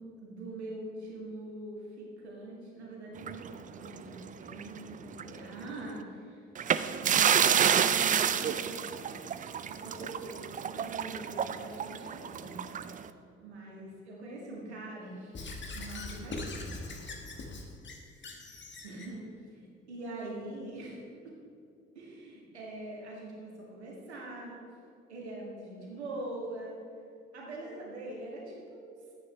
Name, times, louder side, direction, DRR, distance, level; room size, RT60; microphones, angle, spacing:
voice 1, 0.0-6.4 6.8-9.2 9.6-12.6 13.4-15.4 15.7-16.8 18.8-21.3 22.0-24.6 25.1-26.8 27.3-28.9, right 2 dB, 80° right, -3 dB, 1.8 m, -43 dB
sound 1, 3.2-4.8 5.1-5.3 6.6-13.1, right 8 dB, 25° right, 0.4 m, -29 dB
Squeak / Writing, 15.3-19.1, left 2 dB, 35° left, 1.5 m, -41 dB
12.5 x 9.6 x 3.4 m, 2.5 s
figure-of-eight pair, 45°, 33 cm